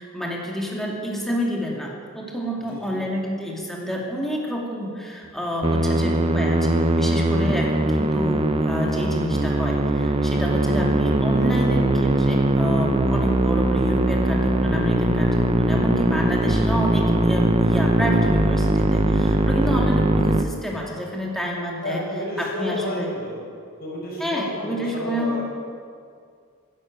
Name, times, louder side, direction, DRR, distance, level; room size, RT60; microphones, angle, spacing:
voice 1, 0.0-22.0 22.4-23.1 24.2-25.4, equal, ahead, -2 dB, 2.5 m, -29 dB
voice 2, 2.6-3.1 11.3-11.8 19.5-19.8 21.8-23.4 23.8-25.4, left 1 dB, 45° left, -4 dB, 5.2 m, -32 dB
Musical instrument, 5.6-20.4, right 1 dB, 25° right, 0.7 m, -20 dB
12.5 x 11.5 x 9.2 m, 2.2 s
head